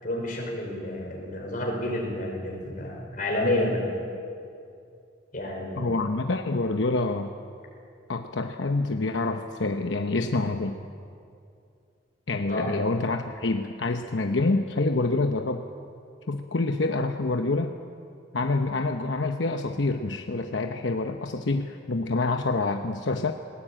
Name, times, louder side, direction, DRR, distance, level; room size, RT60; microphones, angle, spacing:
voice 1, 0.0-3.8 5.3-6.1 12.5-12.7, left 1 dB, 50° left, 0 dB, 5.3 m, -29 dB
voice 2, 5.8-7.3 8.1-10.8 12.3-15.7 16.3-17.7 18.3-23.3, left 3 dB, 85° left, 5 dB, 0.9 m, -27 dB
20.0 x 18.5 x 8.9 m, 2.4 s
head